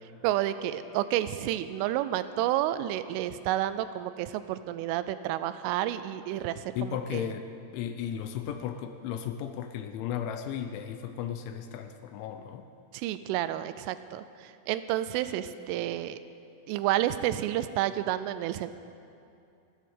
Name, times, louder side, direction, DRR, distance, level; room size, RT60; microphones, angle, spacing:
voice 1, 0.2-7.2 12.9-16.2 16.7-18.7, right 13 dB, 85° right, 13 dB, 3.0 m, -30 dB
voice 2, 6.7-7.4 7.7-12.6, left 9 dB, 80° left, 8 dB, 2.9 m, -35 dB
14.5 x 14.5 x 6.5 m, 2.6 s
omnidirectional pair, 5.7 m